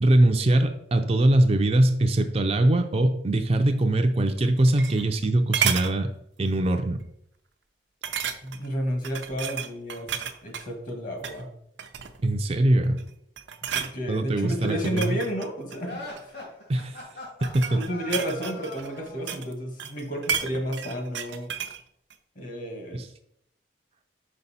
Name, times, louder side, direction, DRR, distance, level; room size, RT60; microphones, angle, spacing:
voice 1, 0.0-6.1 6.4-7.0 12.2-13.0 14.1-15.1 16.7-17.0 17.5-17.8 22.9-23.1, right 1 dB, 35° right, 5 dB, 0.4 m, -22 dB
sound 1, 4.4-5.2 5.5-5.9 6.5-6.7 7.0-7.1 8.0-8.7 9.0-10.7 11.1-11.4 11.8-12.3 12.8-13.1 13.4-13.9 14.7-16.3 17.1-19.5 19.8-21.8 22.1-22.2, right 8 dB, 80° right, 0.6 m, -32 dB
voice 2, 8.4-10.1 10.4-11.5 13.7-16.0 17.7-21.5 22.3-23.0, equal, 45° left, 3 dB, 1.4 m, -31 dB
sound 2, 15.8-19.3, left 1 dB, 65° left, 2.5 m, -40 dB
5.4 x 5.2 x 4.1 m, 0.73 s
head